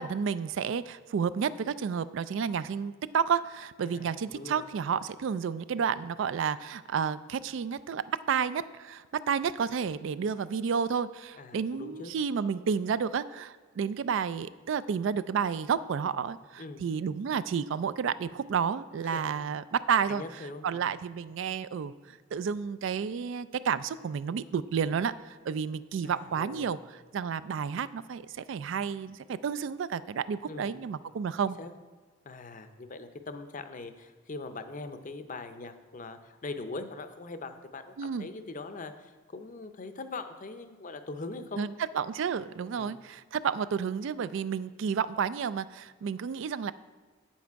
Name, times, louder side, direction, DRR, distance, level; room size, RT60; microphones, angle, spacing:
voice 1, 0.0-20.2 20.6-26.8 27.1-31.6 38.0-38.3 41.6-46.7, right 6 dB, 65° right, 15 dB, 0.3 m, -31 dB
voice 2, 3.8-4.6 11.4-12.1 16.6-16.8 19.0-19.4 20.1-21.0 26.0-26.7 30.5-30.8 31.6-31.7 32.2-41.6 42.7-43.0, left 3 dB, 40° left, 9 dB, 0.6 m, -42 dB
8.8 x 7.3 x 4.6 m, 1.4 s
head